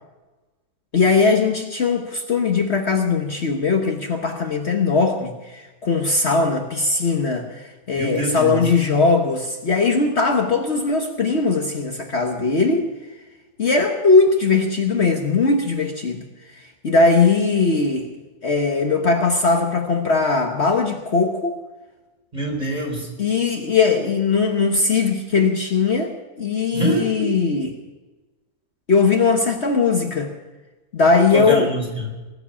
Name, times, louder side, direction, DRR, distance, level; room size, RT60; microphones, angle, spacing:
voice 1, 0.9-12.9 13.6-16.2 16.5-18.1 18.4-21.6 23.2-26.1 26.4-27.7 28.9-30.3 30.9-31.7, left 4 dB, 50° left, 2 dB, 1.4 m, -19 dB
voice 2, 8.0-8.6 22.3-23.1 26.7-27.3 31.3-32.1, right 1 dB, 25° right, 0 dB, 4.2 m, -25 dB
20.5 x 7.9 x 8.6 m, 1.2 s
omnidirectional pair, 1.6 m